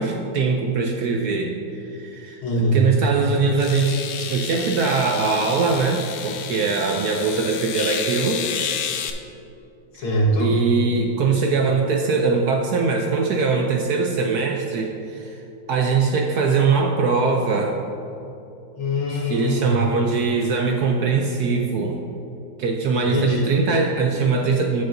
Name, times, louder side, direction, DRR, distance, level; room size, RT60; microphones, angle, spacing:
voice 1, 0.0-2.4 2.7-8.4 10.4-15.4 15.7-17.8 19.1-22.0 22.6-24.8, right 4 dB, 70° right, 2 dB, 0.9 m, -22 dB
voice 2, 2.4-2.8 9.9-10.5 18.8-19.8 22.9-23.4, equal, 90° left, -2 dB, 2.2 m, -22 dB
sound 1, 2.7-2.8 3.6-9.1, left 8 dB, 70° left, 1.1 m, -30 dB
15.0 x 5.7 x 2.6 m, 2.8 s
omnidirectional pair, 2.2 m